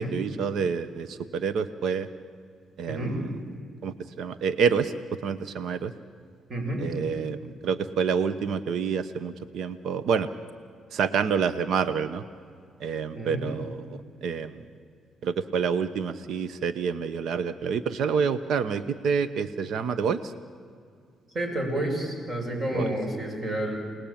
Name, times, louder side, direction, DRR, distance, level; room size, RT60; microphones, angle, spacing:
voice 1, 0.0-2.1 2.8-3.4 3.8-5.9 6.8-10.3 10.9-12.2 12.8-14.7 15.2-20.3 22.7-23.0, right 6 dB, 70° right, 13 dB, 1.0 m, -28 dB
voice 2, 6.5-6.8 13.1-13.4 21.3-23.7, right 1 dB, 45° right, 2 dB, 7.3 m, -30 dB
28.5 x 19.5 x 8.8 m, 2.3 s
cardioid pair, 90°, 0 cm